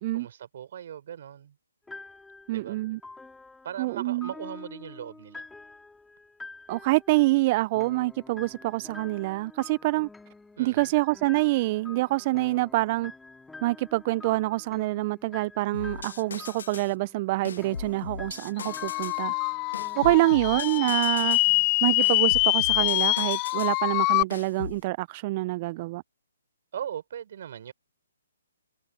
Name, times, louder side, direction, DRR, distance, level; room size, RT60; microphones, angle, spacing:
voice 1, 0.1-1.5 2.5-2.8 3.6-5.4 10.6-10.9 20.0-20.4 26.7-27.7, right 9 dB, 55° right, 4.5 m, -39 dB
sound 1, 1.9-20.7, left 3 dB, 5° left, 4.5 m, -48 dB
voice 2, 2.5-3.0 3.8-4.3 6.7-10.1 10.6-13.1 13.6-19.3 20.0-21.4 21.8-26.0, right 20 dB, 35° right, 0.5 m, -26 dB
sound 2, 15.7-16.9 17.4-19.2 19.7-21.5 22.0-23.8 24.3-24.8, left 6 dB, 70° left, 2.2 m, -39 dB
sound 3, 18.6-24.2, left 31 dB, 25° left, 0.3 m, -25 dB
hypercardioid pair, 145°, 0 cm